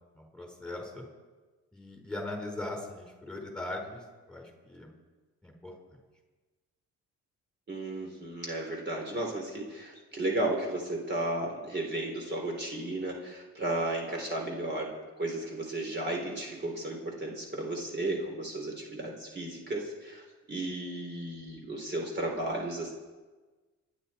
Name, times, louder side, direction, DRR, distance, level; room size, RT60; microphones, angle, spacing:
voice 1, 0.1-1.0 1.7-4.9 5.4-5.7, left 2 dB, 5° left, 0 dB, 4.7 m, -40 dB
voice 2, 7.7-14.9 15.2-20.2 20.5-22.9, right 2 dB, 35° right, 0 dB, 4.0 m, -34 dB
27.5 x 11.0 x 4.5 m, 1.3 s
cardioid pair, 90°, 30 cm